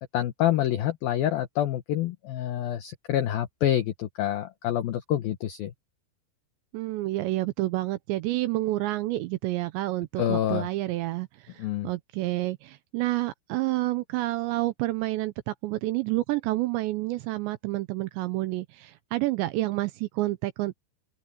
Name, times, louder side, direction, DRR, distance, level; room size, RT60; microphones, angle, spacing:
voice 1, 0.1-5.7 10.2-10.7 11.6-11.9, left 12 dB, 90° left, 2.1 m, -27 dB
voice 2, 6.7-20.7, right 18 dB, 80° right, 2.7 m, -29 dB
open air
omnidirectional pair, 5.7 m